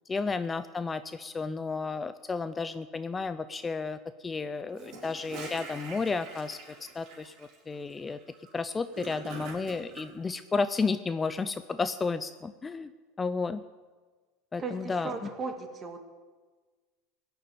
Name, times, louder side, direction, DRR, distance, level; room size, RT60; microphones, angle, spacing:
voice 1, 0.1-6.6 6.9-8.2 8.5-12.9 13.2-13.6 14.5-15.1, left 4 dB, 20° left, 12 dB, 0.5 m, -32 dB
Gurgling / Toilet flush, 4.7-10.1, right 4 dB, 55° right, 4.3 m, -45 dB
voice 2, 14.6-16.0, right 4 dB, 30° right, 6 dB, 1.8 m, -37 dB
16.5 x 7.0 x 9.2 m, 1.4 s
supercardioid pair, 120°, 0 cm